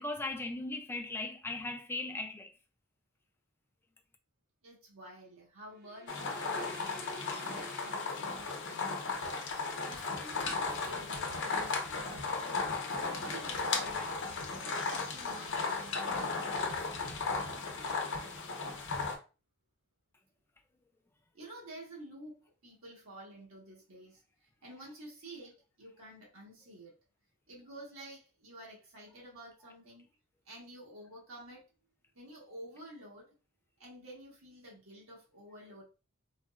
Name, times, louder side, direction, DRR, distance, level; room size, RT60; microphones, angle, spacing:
voice 1, 0.0-2.5, left 2 dB, 10° left, 0.3 m, -38 dB
voice 2, 4.6-9.3 9.9-12.4 12.8-17.2 21.3-26.9 27.5-30.1 30.4-31.7 32.1-33.3 33.8-35.8, right 1 dB, 85° right, 1.3 m, -51 dB
sound 1, 5.7-8.8, equal, 50° right, 0.7 m, -50 dB
sound 2, 6.1-19.2, left 4 dB, 60° left, 0.7 m, -35 dB
3.9 x 2.1 x 2.4 m
head